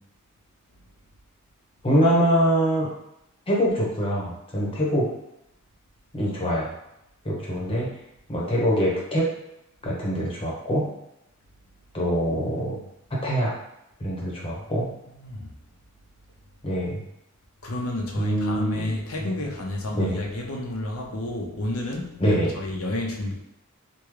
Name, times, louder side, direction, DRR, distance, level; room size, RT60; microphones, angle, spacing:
voice 1, 1.8-2.9 3.5-5.1 6.1-6.7 7.2-7.9 8.3-9.3 9.8-10.9 11.9-12.8 13.1-13.5 14.0-14.9 16.6-17.0 18.2-18.9 19.2-19.3 19.9-20.2 22.2-22.5, equal, 25° left, -4 dB, 0.9 m, -24 dB
voice 2, 14.5-14.9 15.2-15.5 17.6-23.3, left 1 dB, 75° left, 0 dB, 0.7 m, -31 dB
3.5 x 2.2 x 3.1 m, 0.84 s
head